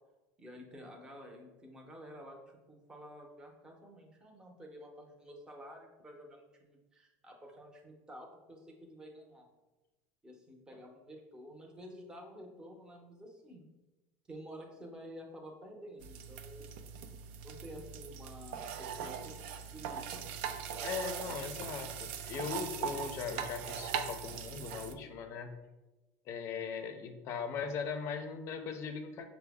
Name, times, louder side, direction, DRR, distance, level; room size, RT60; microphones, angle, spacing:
voice 1, 0.4-9.5 10.2-13.6 14.3-16.7 17.4-20.4 21.3-21.4, equal, 10° right, 1 dB, 0.7 m, -51 dB
sound 1, 16.0-24.9, right 8 dB, 80° right, 0.3 m, -40 dB
voice 2, 20.8-25.5 26.3-29.2, left 6 dB, 45° left, 7 dB, 0.5 m, -39 dB
5.7 x 2.0 x 3.4 m, 1.1 s
supercardioid pair, 135°, 6 cm